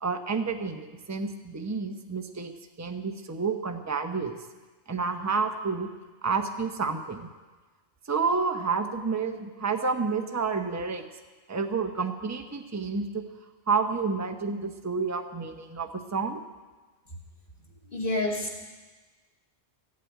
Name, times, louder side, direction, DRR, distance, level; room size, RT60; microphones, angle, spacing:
voice 1, 0.0-2.5 2.8-4.4 4.9-5.9 6.2-7.3 8.1-11.0 11.5-13.2 13.7-16.4, right 4 dB, 15° right, 5 dB, 0.8 m, -29 dB
voice 2, 17.9-18.6, left 2 dB, 50° left, -1 dB, 2.5 m, -29 dB
15.0 x 8.2 x 9.1 m, 1.3 s
omnidirectional pair, 1.2 m